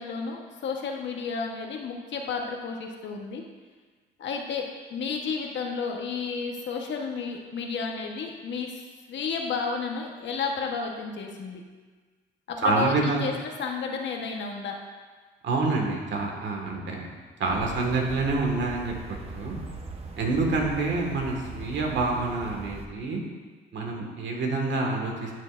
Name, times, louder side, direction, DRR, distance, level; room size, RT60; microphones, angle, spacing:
voice 1, 0.0-3.4 4.2-4.6 4.9-8.7 9.1-11.6 12.5-14.8, left 5 dB, 65° left, 2 dB, 1.1 m, -32 dB
voice 2, 12.6-13.2 15.4-17.1 17.4-18.9 19.3-19.6 20.2-23.2 23.7-25.3, right 3 dB, 65° right, 0 dB, 1.7 m, -27 dB
sound 1, 17.5-22.9, right 3 dB, 30° right, 1.0 m, -40 dB
12.5 x 6.6 x 2.5 m, 1.4 s
cardioid pair, 90°, 20 cm